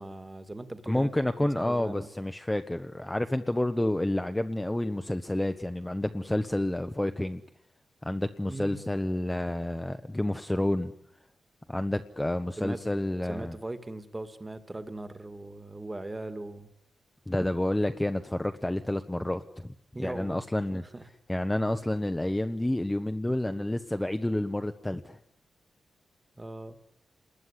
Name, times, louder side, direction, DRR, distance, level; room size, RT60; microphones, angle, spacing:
voice 1, 0.0-2.1 8.5-8.8 12.6-12.8 13.3-16.7 19.9-20.4 20.7-21.1 26.4-26.8, right 2 dB, 15° right, 11 dB, 1.9 m, -39 dB
voice 2, 0.9-7.4 8.0-10.9 11.7-13.6 17.3-19.7 20.0-20.8 21.3-25.2, left 1 dB, 10° left, 8 dB, 1.0 m, -29 dB
29.0 x 20.5 x 9.9 m, 0.82 s
wide cardioid pair, 150°, 0 cm